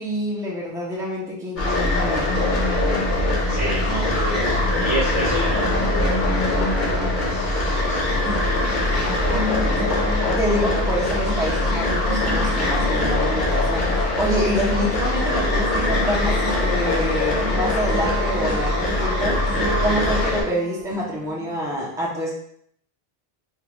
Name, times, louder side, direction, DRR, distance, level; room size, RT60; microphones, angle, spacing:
voice 1, 0.0-2.3 10.4-22.3, equal, 5° right, -5 dB, 0.7 m, -27 dB
sound 1, 1.6-20.4, left 2 dB, 50° left, 0.8 m, -22 dB
voice 2, 3.4-8.7 9.3-9.9 14.4-14.5, right 1 dB, 25° right, -11 dB, 1.2 m, -31 dB
sound 2, 7.5-7.9 8.2-21.7, right 1 dB, 50° right, 1.0 m, -32 dB
3.7 x 2.4 x 3.0 m, 0.68 s
omnidirectional pair, 1.1 m